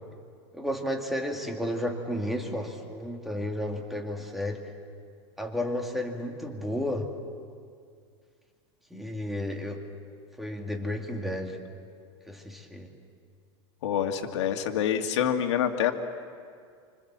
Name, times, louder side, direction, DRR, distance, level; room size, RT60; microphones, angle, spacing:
voice 1, 0.5-4.7 5.4-7.1 8.9-9.9 10.4-11.6 12.3-12.9, left 1 dB, ahead, 2 dB, 2.1 m, -32 dB
voice 2, 13.8-15.9, left 9 dB, 80° left, 5 dB, 2.1 m, -26 dB
27.0 x 26.0 x 7.5 m, 2.2 s
supercardioid pair, 150°, 15 cm